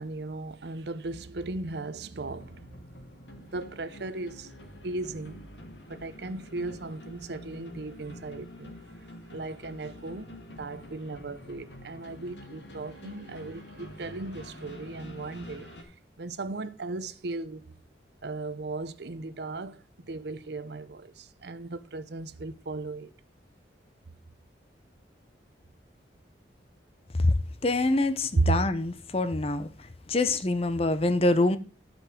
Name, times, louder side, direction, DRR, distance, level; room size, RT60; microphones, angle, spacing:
voice 1, 0.0-2.6 3.4-4.5 4.8-5.4 5.9-8.7 9.3-10.3 10.6-15.8 16.2-17.7 18.2-23.1 28.4-28.6, right 3 dB, 65° right, 0.6 m, -35 dB
sound 1, 2.2-15.8, left 1 dB, 75° left, 2.3 m, -47 dB
voice 2, 27.1-31.6, left 2 dB, 35° left, 0.6 m, -25 dB
11.5 x 5.2 x 5.0 m
head